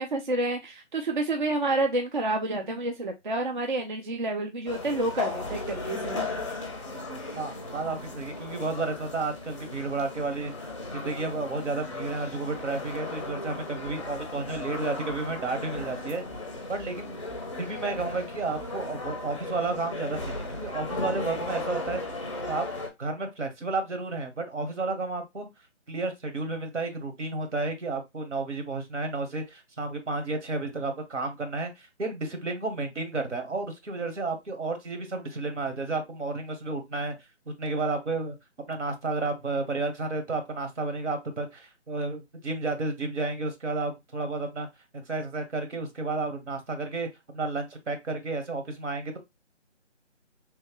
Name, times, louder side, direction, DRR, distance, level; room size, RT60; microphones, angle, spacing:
voice 1, 0.0-6.3 13.7-13.8, right 2 dB, 40° right, 4 dB, 0.5 m, -29 dB
sound 1, 4.7-22.9, left 2 dB, 25° left, 0.5 m, -36 dB
voice 2, 7.3-10.5 10.9-16.2 16.7-17.2 17.6-22.0 22.5-22.6 23.0-25.5 25.9-37.1 37.6-38.3 38.7-44.7 45.1-49.2, right 3 dB, 75° right, 6 dB, 1.3 m, -32 dB
3.1 x 2.2 x 3.6 m, 0.20 s
figure-of-eight pair, 160°, 36 cm